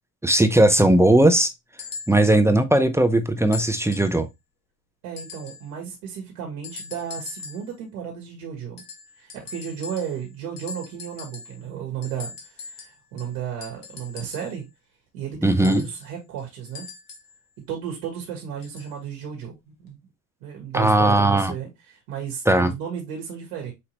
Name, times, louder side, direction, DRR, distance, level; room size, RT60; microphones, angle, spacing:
voice 1, 0.2-1.5 2.1-4.3 15.4-15.8 20.7-21.5 22.5-22.7, right 1 dB, 5° right, 0.6 m, -18 dB
sound 1, 1.8-2.4 3.5-4.2 5.2-5.7 6.6-7.7 8.8-10.3 10.6-11.6 12.0-14.6 15.6-17.4 18.6-19.0 19.9-20.0, left 5 dB, 70° left, 1.4 m, -41 dB
voice 2, 5.0-8.8 9.2-14.6 15.1-16.9 17.7-20.0 20.4-23.7, right 8 dB, 75° right, 1.6 m, -34 dB
6.1 x 2.8 x 2.8 m
hypercardioid pair, 65°, 47 cm